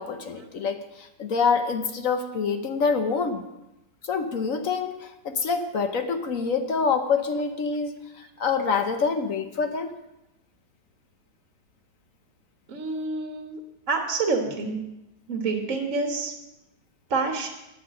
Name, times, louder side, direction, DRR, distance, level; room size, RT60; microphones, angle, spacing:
voice 1, 0.0-3.4 4.0-9.9, left 5 dB, 55° left, 7 dB, 1.1 m, -26 dB
voice 2, 12.7-13.6 13.9-14.8 15.3-16.3 17.1-17.5, right 4 dB, 50° right, 3 dB, 1.7 m, -27 dB
9.8 x 9.1 x 7.6 m, 0.93 s
omnidirectional pair, 1.9 m